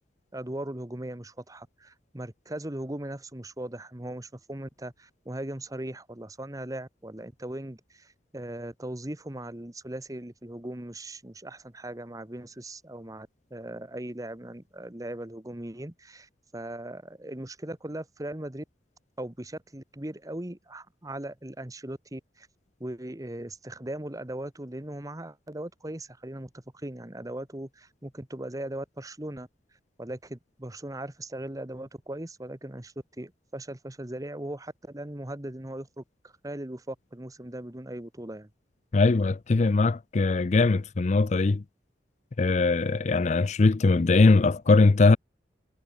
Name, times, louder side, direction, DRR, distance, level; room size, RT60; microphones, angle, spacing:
voice 1, 0.3-18.6 19.2-22.5 22.8-29.5 30.0-38.5, right 1 dB, 20° right, 1.3 m, -39 dB
voice 2, 38.9-41.6 42.4-45.2, left 3 dB, 40° left, 0.5 m, -21 dB
head